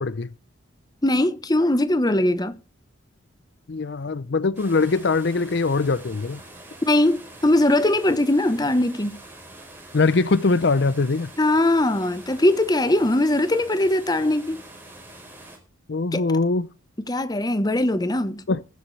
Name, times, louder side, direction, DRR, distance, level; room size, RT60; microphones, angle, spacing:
voice 1, 0.0-0.3 3.7-6.4 9.9-11.3 15.9-16.7 18.5-18.6, left 3 dB, 60° left, 0.6 m, -22 dB
voice 2, 1.0-2.5 6.9-9.2 11.4-14.6 16.1-16.3 17.1-18.4, left 1 dB, 20° left, 1.0 m, -21 dB
sound 1, 4.5-15.6, right 1 dB, 10° right, 4.2 m, -45 dB
21.5 x 8.4 x 3.3 m
head